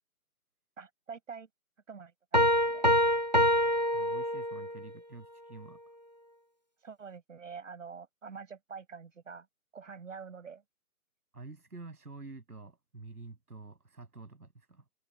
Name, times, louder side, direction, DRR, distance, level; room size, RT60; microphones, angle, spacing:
voice 1, 0.8-1.5 1.9-3.2 6.8-9.5 9.7-10.6, right 5 dB, 55° right, 6.0 m, -46 dB
sound 1, 2.3-4.8, equal, 30° right, 0.4 m, -26 dB
voice 2, 3.9-5.8 11.3-14.8, right 3 dB, 90° right, 7.2 m, -48 dB
open air
figure-of-eight pair, 160°, 44 cm